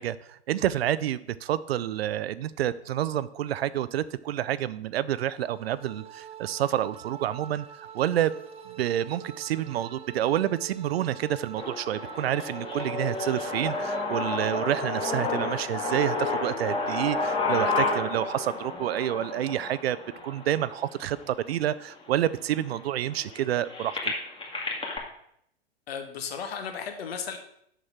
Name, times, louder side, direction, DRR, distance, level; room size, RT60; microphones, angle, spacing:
voice 1, 0.0-7.7 7.9-8.3 8.7-20.0 20.2-24.1, right 12 dB, 65° right, 17 dB, 0.6 m, -28 dB
sound 1, 5.1-14.0, right 8 dB, 20° right, 0.6 m, -45 dB
sound 2, 11.5-21.5 22.2-22.3 22.5-25.0, left 3 dB, 15° left, 1.9 m, -31 dB
voice 2, 25.9-27.4, left 6 dB, 65° left, 6 dB, 1.6 m, -35 dB
6.6 x 6.3 x 6.0 m, 0.71 s
hypercardioid pair, 105°, 33 cm